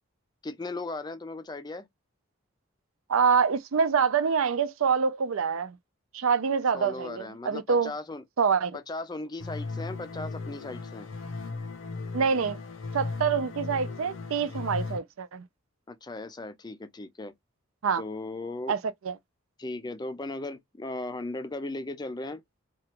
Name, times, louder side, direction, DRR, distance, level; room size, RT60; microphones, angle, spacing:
voice 1, 0.4-1.9 6.7-8.2 8.7-11.1 15.9-17.3 18.0-18.8 19.6-22.4, left 2 dB, 20° left, 0.4 m, -37 dB
voice 2, 3.1-5.8 6.1-7.9 8.4-8.8 12.1-12.6 12.9-15.4 17.8-18.0 18.7-18.8 19.0-19.2, right 6 dB, 80° right, 0.5 m, -26 dB
sound 1, 9.4-15.0, left 3 dB, 75° left, 0.6 m, -36 dB
3.0 x 2.4 x 2.9 m
head